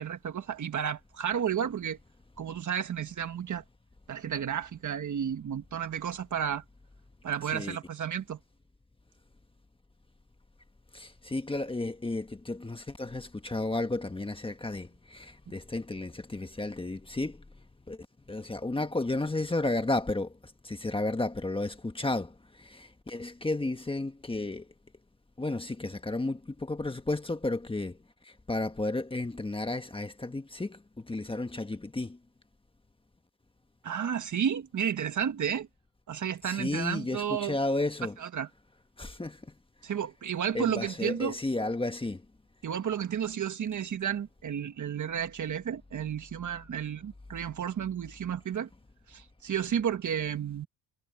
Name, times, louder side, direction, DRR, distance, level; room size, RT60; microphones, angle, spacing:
voice 1, 0.0-2.0 2.4-3.6 4.1-6.6 7.2-8.4 33.8-35.7 36.1-37.5 38.2-38.5 39.8-41.3 42.6-48.7 49.1-50.7, right 8 dB, 40° right, 1.5 m, -32 dB
voice 2, 10.9-17.4 17.9-18.0 18.3-20.3 20.6-24.7 25.4-28.0 28.2-32.2 36.4-38.2 39.0-39.4 40.5-42.2, left 2 dB, 10° left, 1.4 m, -33 dB
cardioid pair, 120°, 47 cm